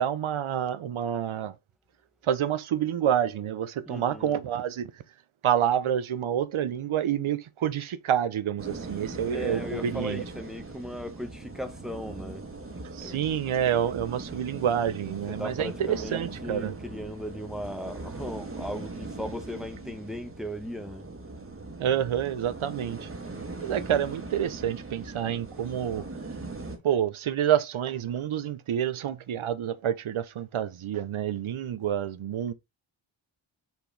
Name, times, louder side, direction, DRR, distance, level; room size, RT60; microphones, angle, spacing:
voice 1, 0.0-1.5 2.2-4.9 5.4-10.2 12.9-16.7 21.8-23.1 23.6-26.0 26.8-32.5, right 9 dB, 75° right, 0.9 m, -28 dB
voice 2, 3.9-4.4 9.2-12.5 13.0-13.3 15.3-21.1, equal, ahead, 1.1 m, -37 dB
sound 1, 8.6-26.8, right 3 dB, 25° right, 1.6 m, -40 dB
7.9 x 4.5 x 3.4 m
wide cardioid pair, 170°, 49 cm